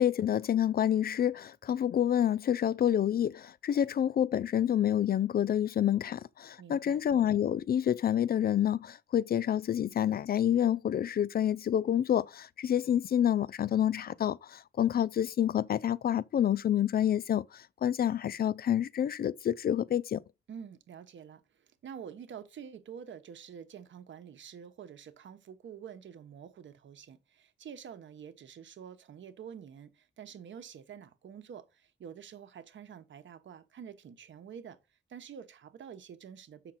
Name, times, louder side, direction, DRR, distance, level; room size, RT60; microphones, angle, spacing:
voice 1, 0.0-20.2, left 10 dB, 50° left, 0.4 m, -28 dB
voice 2, 6.6-7.0 20.5-34.8 35.1-36.7, right 8 dB, 75° right, 1.1 m, -47 dB
7.3 x 5.9 x 4.1 m
cardioid pair, 105°, 19 cm